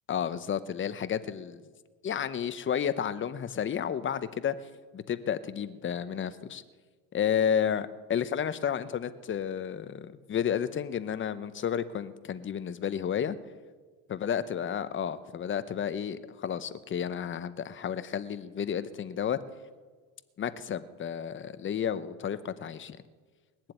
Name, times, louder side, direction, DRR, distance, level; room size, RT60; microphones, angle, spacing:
voice 1, 0.1-1.6 2.0-4.6 4.9-6.6 7.1-13.4 14.1-19.4 20.4-23.0, left 8 dB, 25° left, 13 dB, 0.8 m, -31 dB
21.0 x 7.5 x 9.0 m, 1.4 s
cardioid pair, 130°, 45 cm